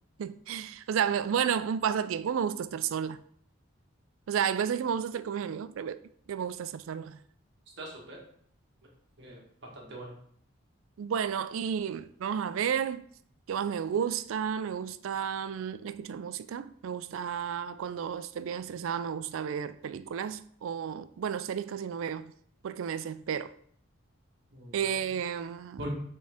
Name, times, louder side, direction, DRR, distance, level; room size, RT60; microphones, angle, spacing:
voice 1, 0.2-3.2 4.3-6.0 6.3-7.2 11.0-13.0 13.5-22.3 22.6-23.5 24.7-25.8, right 8 dB, 70° right, 0.3 m, -32 dB
voice 2, 7.8-8.2 9.2-10.1 24.5-24.8 25.8-25.9, right 1 dB, 55° right, 1.6 m, -42 dB
6.0 x 4.5 x 3.5 m
head